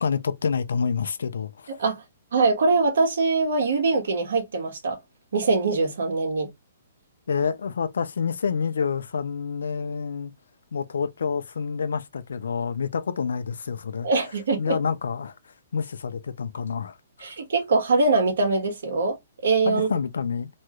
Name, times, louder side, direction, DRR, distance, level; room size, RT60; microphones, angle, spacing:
voice 1, 0.0-1.7 7.3-10.3 10.7-14.1 14.6-17.4 19.6-20.5, left 6 dB, 85° left, 0.5 m, -28 dB
voice 2, 2.3-5.0 5.3-6.5 14.0-14.8 17.2-19.2 19.4-19.9, right 3 dB, 75° right, 1.4 m, -23 dB
3.1 x 2.3 x 3.0 m
hypercardioid pair, 165°, 0 cm